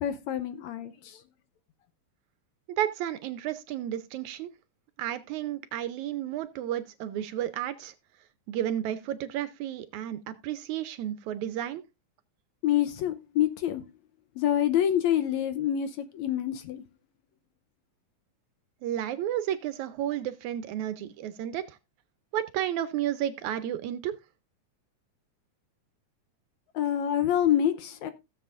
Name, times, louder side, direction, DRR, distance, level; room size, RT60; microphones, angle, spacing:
voice 1, 0.0-1.2 12.6-13.8 14.4-16.8 26.7-28.1, left 10 dB, 75° left, 1.8 m, -27 dB
voice 2, 2.8-4.5 5.0-7.9 8.5-11.8 18.8-21.8 22.3-24.2, right 11 dB, 75° right, 1.9 m, -32 dB
16.5 x 7.6 x 2.5 m
omnidirectional pair, 3.7 m